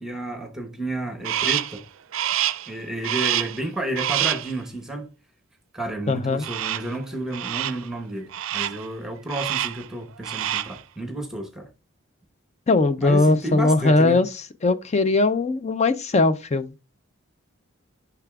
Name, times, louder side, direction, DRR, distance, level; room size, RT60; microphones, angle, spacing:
voice 1, 0.0-1.8 2.7-5.1 5.7-11.7 13.0-14.2, right 1 dB, 5° right, 0.9 m, -31 dB
Crow, 1.2-1.8 2.1-2.7 3.0-3.6 4.0-4.5 6.4-7.0 7.3-7.9 8.3-8.9 9.3-9.9 10.2-10.8, right 12 dB, 70° right, 0.4 m, -27 dB
voice 2, 6.1-6.4 12.7-16.8, left 3 dB, 35° left, 0.5 m, -20 dB
10.0 x 5.8 x 2.3 m
head